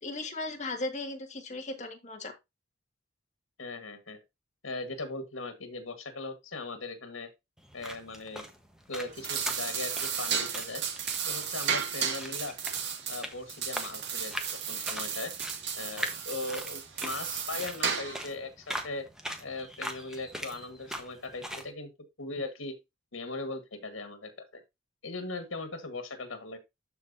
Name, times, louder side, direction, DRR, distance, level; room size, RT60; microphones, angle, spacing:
voice 1, 0.0-2.3, left 2 dB, 35° left, 2.0 m, -36 dB
voice 2, 3.6-4.2 4.6-7.3 7.7-8.5 8.9-10.8 11.3-12.6 13.1-15.3 15.8-19.1 19.4-21.9 22.2-22.7 23.1-24.6 25.0-26.6, left 3 dB, 85° left, 1.8 m, -39 dB
sound 1, 7.6-21.7, equal, 5° right, 1.3 m, -42 dB
sound 2, 9.0-18.3, right 7 dB, 60° right, 1.8 m, -34 dB
12.5 x 4.5 x 2.8 m
head